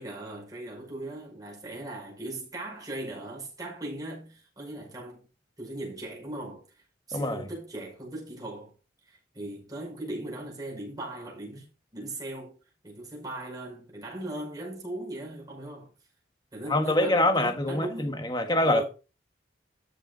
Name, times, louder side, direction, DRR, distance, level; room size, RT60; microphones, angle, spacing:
voice 1, 0.0-5.2 5.6-8.7 9.1-11.7 11.9-12.6 12.8-15.9 16.5-18.1 18.6-18.8, right 1 dB, 20° right, 5.5 m, -39 dB
voice 2, 7.1-7.5 16.7-18.8, left 1 dB, 20° left, 1.3 m, -25 dB
13.0 x 6.7 x 4.0 m
head